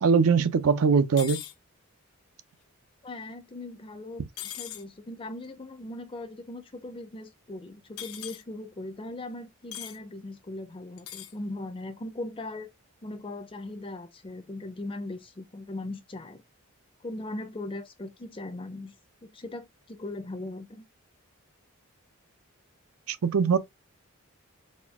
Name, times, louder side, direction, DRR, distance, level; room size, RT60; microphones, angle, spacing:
voice 1, 0.0-1.4 4.2-4.3 23.1-23.6, right 5 dB, 75° right, 0.5 m, -22 dB
sound 1, 1.2-1.5 4.4-4.8 8.0-8.4 9.7-10.0 11.0-11.3, left 12 dB, 75° left, 0.6 m, -39 dB
voice 2, 3.0-12.7 13.0-16.4 17.0-18.9 19.2-20.9, left 2 dB, 25° left, 0.5 m, -39 dB
4.2 x 2.3 x 3.4 m
head